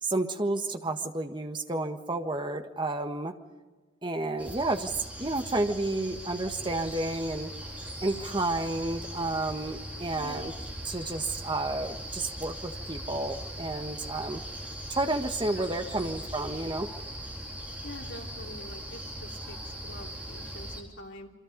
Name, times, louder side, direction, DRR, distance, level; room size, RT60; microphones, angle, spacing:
voice 1, 0.0-3.3 4.0-4.9 5.2-7.5 8.0-10.5 10.8-14.4 14.9-16.9, right 2 dB, 25° right, 6 dB, 1.5 m, -31 dB
sound 1, 4.4-20.8, right 1 dB, 5° right, 3.9 m, -40 dB
voice 2, 10.2-10.5 15.5-16.2 17.8-21.3, left 1 dB, 65° left, 1 dB, 3.3 m, -46 dB
28.0 x 24.5 x 5.3 m, 1.3 s
head